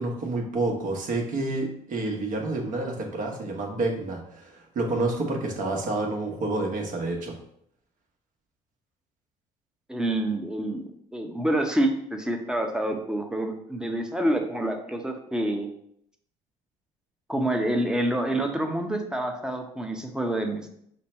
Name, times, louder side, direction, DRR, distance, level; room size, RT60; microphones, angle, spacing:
voice 1, 0.0-7.4, right 2 dB, 55° right, 1 dB, 1.2 m, -29 dB
voice 2, 9.9-15.7 17.3-20.7, right 1 dB, 5° right, 3 dB, 0.8 m, -27 dB
5.3 x 2.1 x 4.3 m, 0.70 s
hypercardioid pair, 65°, 16 cm